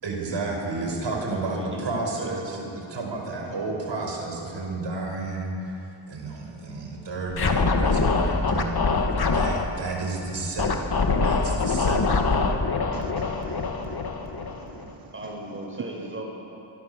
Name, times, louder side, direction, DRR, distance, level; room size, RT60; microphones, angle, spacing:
voice 1, 0.0-10.9 11.2-12.2, right 3 dB, 65° right, 1 dB, 5.8 m, -31 dB
voice 2, 1.2-2.7 15.1-16.2, right 1 dB, 25° right, -1 dB, 7.3 m, -37 dB
Scratching (performance technique), 7.3-9.6 10.6-14.9, left 4 dB, 50° left, 2.4 m, -24 dB
voice 3, 12.9-15.1, right 8 dB, 45° right, 11 dB, 0.8 m, -46 dB
26.0 x 24.0 x 7.2 m, 3.0 s
wide cardioid pair, 100°, 47 cm